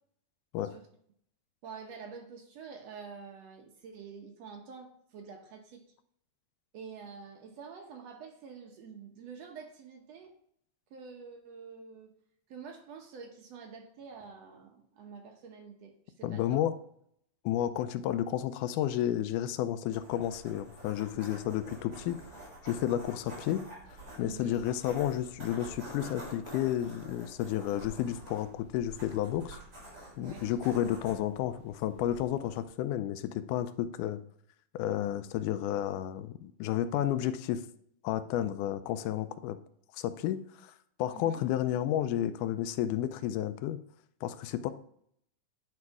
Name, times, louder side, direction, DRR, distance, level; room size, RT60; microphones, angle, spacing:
voice 1, 1.6-5.9 6.7-10.3 10.9-12.1 12.5-16.6 24.2-24.6 30.2-30.5 41.1-41.4, right 5 dB, 65° right, 3 dB, 1.9 m, -47 dB
voice 2, 16.2-16.8 17.5-22.2 22.6-23.6 24.2-29.6 30.2-34.2 34.7-37.6 38.0-39.6 40.0-40.7 41.0-43.8 44.2-44.7, left 11 dB, 90° left, 12 dB, 2.1 m, -31 dB
sound 1, 19.9-32.6, right 1 dB, 35° right, 4.0 m, -48 dB
9.8 x 4.7 x 4.7 m, 0.68 s
omnidirectional pair, 3.5 m